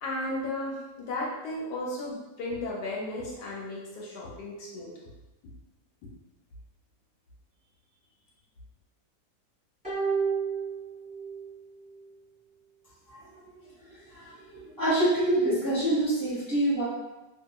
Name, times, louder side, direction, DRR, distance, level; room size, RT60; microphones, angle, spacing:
voice 1, 0.0-4.9, left 2 dB, 70° left, -4 dB, 1.1 m, -34 dB
sound 1, 9.8-11.5 11.8-11.9, right 5 dB, 5° right, 1.2 m, -30 dB
voice 2, 14.8-16.8, right 1 dB, 35° right, -10 dB, 0.3 m, -25 dB
2.8 x 2.4 x 2.3 m, 1.0 s
omnidirectional pair, 2.0 m